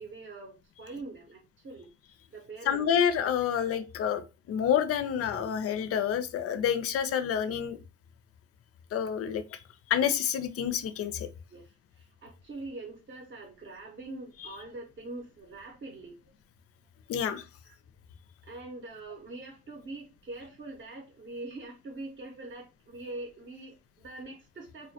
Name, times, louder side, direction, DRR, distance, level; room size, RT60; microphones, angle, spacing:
voice 1, 0.0-1.9 2.3-2.9 3.5-3.8 4.2-4.3 11.5-16.2 17.6-17.7 18.4-24.9, right 2 dB, 40° right, 0.6 m, -43 dB
voice 2, 2.7-7.8 8.9-9.4 9.9-11.3 17.1-17.4, left 8 dB, 50° left, 0.4 m, -28 dB
2.2 x 2.1 x 2.7 m
cardioid pair, 90°, 30 cm